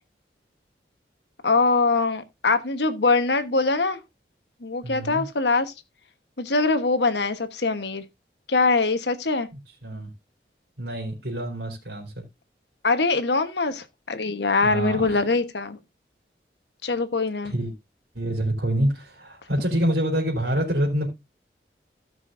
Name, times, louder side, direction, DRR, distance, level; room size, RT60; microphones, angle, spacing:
voice 1, 1.4-4.0 4.6-5.7 6.4-8.0 8.5-9.5 12.8-15.8 16.8-17.5, left 3 dB, 80° left, 1.2 m, -23 dB
voice 2, 4.8-5.2 9.8-10.1 10.8-12.1 14.6-15.2 17.4-17.7 18.1-21.1, right 1 dB, 90° right, 3.8 m, -26 dB
16.5 x 6.2 x 2.6 m
head